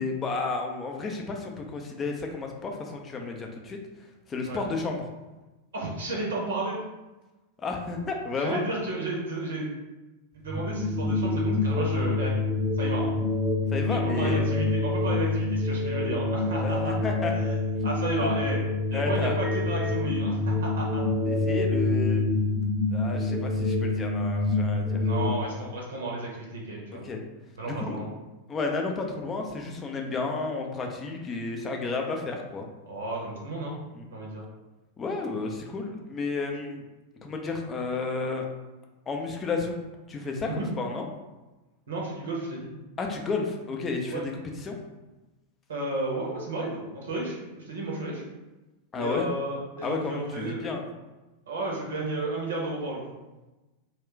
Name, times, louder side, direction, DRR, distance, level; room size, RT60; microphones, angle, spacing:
voice 1, 0.0-3.8 4.3-5.0 7.6-8.6 13.7-14.4 16.6-17.3 18.2-18.3 18.9-19.4 21.3-22.2 22.9-25.0 27.0-27.2 27.6-28.0 28.5-32.7 34.0-34.1 35.0-36.8 37.2-38.5 39.1-39.8 40.1-41.0 43.0-44.3 44.6-44.8 48.9-49.3 49.8-50.9, left 3 dB, 20° left, 2 dB, 0.5 m, -32 dB
voice 2, 5.7-6.8 8.4-9.7 10.3-12.3 12.8-13.1 13.9-17.0 17.3-17.5 17.8-18.6 18.9-21.0 25.0-27.0 27.5-28.1 32.9-33.8 34.1-34.4 40.4-40.7 41.9-42.7 44.1-44.2 45.7-48.2 48.9-50.7 51.5-53.1, right 2 dB, 65° right, -2 dB, 0.7 m, -32 dB
sound 1, 10.5-25.3, left 3 dB, 10° right, 0.7 m, -26 dB
2.3 x 2.3 x 3.6 m, 1.1 s
figure-of-eight pair, 90°, 0 cm